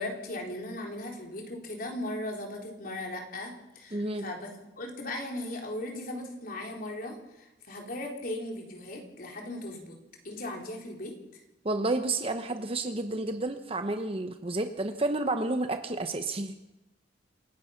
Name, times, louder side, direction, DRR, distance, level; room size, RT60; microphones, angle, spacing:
voice 1, 0.0-4.5 4.8-10.0 10.2-11.2, left 1 dB, 50° left, 1 dB, 4.1 m, -37 dB
voice 2, 3.9-4.3 11.6-16.6, right 2 dB, 30° right, 7 dB, 0.9 m, -30 dB
27.5 x 16.5 x 5.9 m, 0.97 s
head